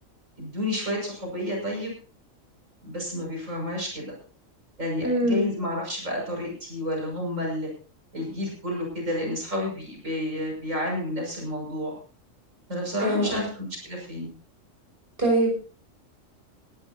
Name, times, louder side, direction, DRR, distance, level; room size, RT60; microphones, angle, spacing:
voice 1, 0.4-1.9 2.8-4.1 4.8-7.7 8.1-11.9 12.7-14.3, left 1 dB, 70° right, -1 dB, 6.6 m, -30 dB
voice 2, 5.0-5.5 13.0-13.4 15.2-15.5, equal, 45° right, -1 dB, 6.2 m, -23 dB
21.5 x 13.5 x 2.8 m, 0.39 s
omnidirectional pair, 1.4 m